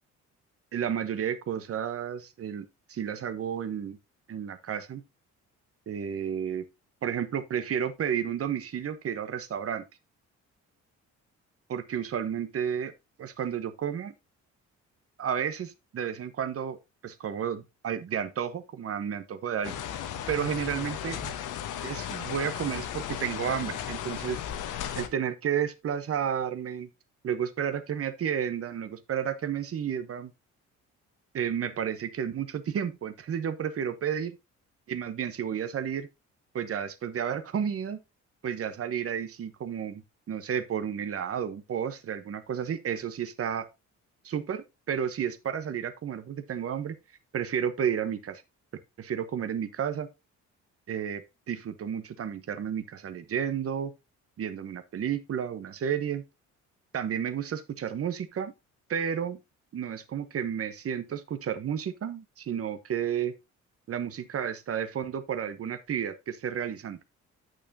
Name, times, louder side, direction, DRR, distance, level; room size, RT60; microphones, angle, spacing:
voice 1, 0.7-4.0 4.3-5.0 5.9-6.6 7.0-9.8 11.7-12.9 13.2-14.1 15.2-16.8 17.0-19.7 20.3-21.3 21.8-24.4 24.9-26.9 27.2-30.3 31.3-34.3 34.9-36.1 36.5-38.0 38.4-43.7 44.2-47.0 47.3-48.4 49.0-50.1 50.9-53.9 54.4-56.2 56.9-58.5 58.9-59.4 59.7-63.3 63.9-67.0, right 8 dB, 50° right, 1.1 m, -32 dB
sound 1, 19.6-25.1, left 10 dB, 85° left, 1.1 m, -35 dB
9.0 x 6.4 x 2.8 m
cardioid pair, 90°, 30 cm